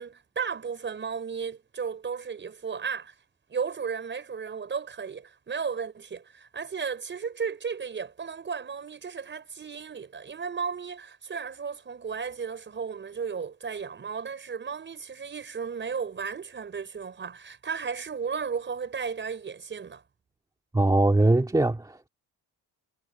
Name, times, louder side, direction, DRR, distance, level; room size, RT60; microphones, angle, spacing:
voice 1, 0.0-3.1 3.5-20.0, right 6 dB, 30° right, 5.4 m, -34 dB
voice 2, 20.7-22.1, right 2 dB, 10° right, 2.4 m, -22 dB
cardioid pair, 160°, 38 cm